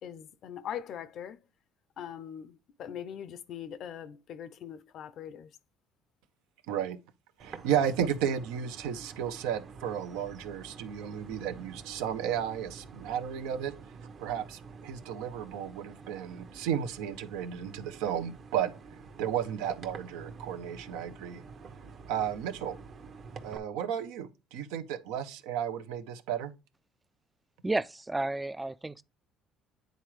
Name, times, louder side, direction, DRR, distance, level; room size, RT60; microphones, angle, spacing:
voice 1, 0.0-1.4 2.0-5.5, left 9 dB, 60° left, 0.5 m, -41 dB
voice 2, 6.7-7.0 7.4-13.7 14.2-18.7 19.2-21.4 22.1-22.7 23.4-26.5, right 9 dB, 85° right, 0.6 m, -33 dB
sound 1, 7.4-23.6, right 4 dB, 50° right, 0.9 m, -48 dB
voice 3, 27.6-29.0, right 2 dB, 15° right, 0.3 m, -32 dB
9.2 x 3.8 x 3.1 m
supercardioid pair, 85°, 0 cm